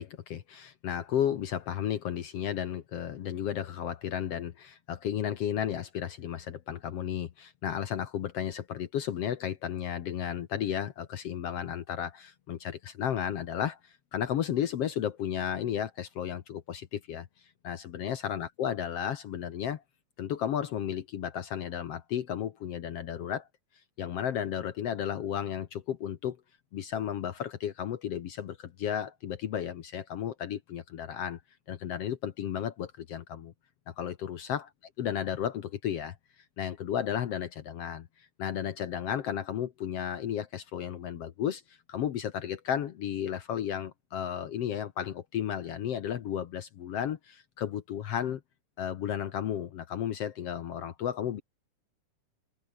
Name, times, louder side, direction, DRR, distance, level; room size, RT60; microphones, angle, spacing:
voice 1, 0.0-17.3 17.6-19.8 20.2-23.5 24.0-26.4 26.7-31.4 31.7-33.5 33.9-34.7 35.0-36.2 36.6-48.4 48.8-51.4, left 9 dB, 60° left, 1.8 m, -33 dB
omnidirectional pair, 3.6 m